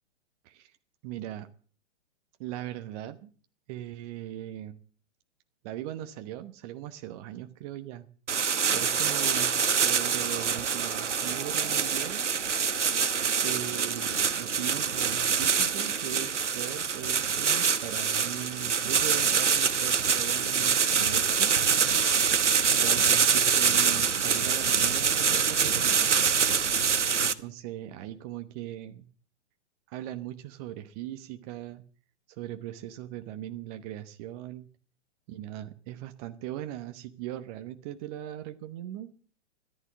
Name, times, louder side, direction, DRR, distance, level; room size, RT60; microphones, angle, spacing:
voice 1, 0.4-0.8 1.0-1.5 2.4-3.3 3.7-4.8 5.6-8.1 8.3-12.3 13.4-21.5 22.5-26.1 27.2-29.1 29.9-31.8 32.3-34.7 35.3-39.1, right 13 dB, 35° right, 8 dB, 1.1 m, -39 dB
sound 1, 8.3-27.3, right 6 dB, 80° right, 1.1 m, -25 dB
14.0 x 11.0 x 7.3 m, 0.41 s
figure-of-eight pair, 115°, 35 cm